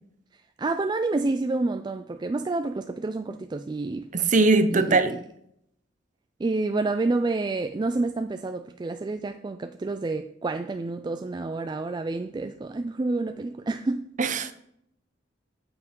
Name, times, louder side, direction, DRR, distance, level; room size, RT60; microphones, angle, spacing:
voice 1, 0.3-4.1 4.7-5.2 6.4-14.1, right 3 dB, 25° right, 0.3 m, -29 dB
voice 2, 4.1-5.1 14.2-14.5, right 3 dB, 40° right, 0.7 m, -21 dB
7.9 x 5.9 x 5.3 m
head